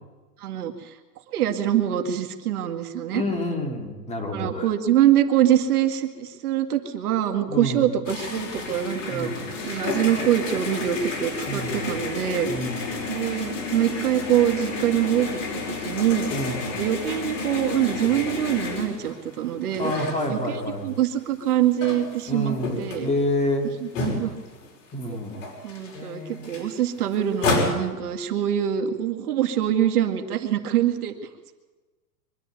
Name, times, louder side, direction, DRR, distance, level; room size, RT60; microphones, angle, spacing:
voice 1, 0.4-0.9 1.3-3.2 4.3-9.3 9.6-12.5 13.1-15.3 15.8-16.3 16.7-19.9 20.3-23.1 23.8-24.3 25.1-25.2 25.6-31.1, right 11 dB, 60° right, 5 dB, 2.2 m, -24 dB
voice 2, 3.1-4.7 7.5-7.9 9.1-9.3 11.5-12.0 12.5-12.9 16.3-16.7 17.9-18.1 19.8-20.9 22.3-23.7 24.9-25.4 25.9-26.6, left 1 dB, 15° left, 3 dB, 2.6 m, -28 dB
sound 1, 8.1-20.9 21.3-24.7 25.0-25.1 25.3-27.7, left 3 dB, 50° left, 5.5 m, -31 dB
24.0 x 12.0 x 9.1 m, 1.2 s
hypercardioid pair, 150°, 49 cm